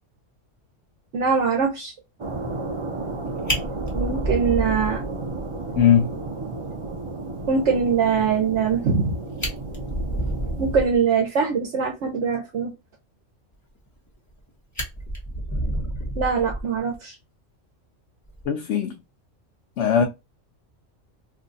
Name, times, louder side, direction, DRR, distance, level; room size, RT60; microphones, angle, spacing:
voice 1, 1.1-1.9 3.9-5.0 7.5-9.2 10.6-12.7 16.2-17.1 20.0-20.1, right 6 dB, 70° right, 1.0 m, -22 dB
sound 1, 2.2-10.9, right 2 dB, 45° right, 0.4 m, -33 dB
Fire, 3.1-3.2 3.5-5.4 5.8-5.9 6.2-6.3 6.7-6.8 8.9-9.0 9.3-11.0 13.9-14.4 14.8-17.0 18.3-18.5, right 1 dB, 15° left, 1.0 m, -29 dB
voice 2, 5.7-6.1 18.5-19.0 19.8-20.0, left 8 dB, 70° left, 0.8 m, -19 dB
2.7 x 2.3 x 3.9 m
omnidirectional pair, 1.3 m